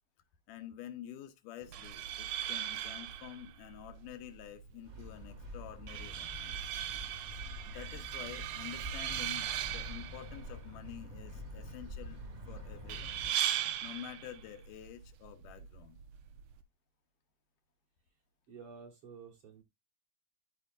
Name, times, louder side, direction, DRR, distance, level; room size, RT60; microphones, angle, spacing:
voice 1, 0.5-6.4 7.7-12.2 12.5-13.2 13.8-16.0, left 11 dB, 85° left, 2.5 m, -48 dB
sound 1, 1.6-16.6, right 11 dB, 85° right, 1.4 m, -40 dB
sound 2, 4.8-13.3, left 1 dB, 40° right, 1.0 m, -46 dB
voice 2, 18.5-19.6, right 6 dB, 60° right, 1.7 m, -51 dB
13.5 x 4.6 x 2.4 m
omnidirectional pair, 3.7 m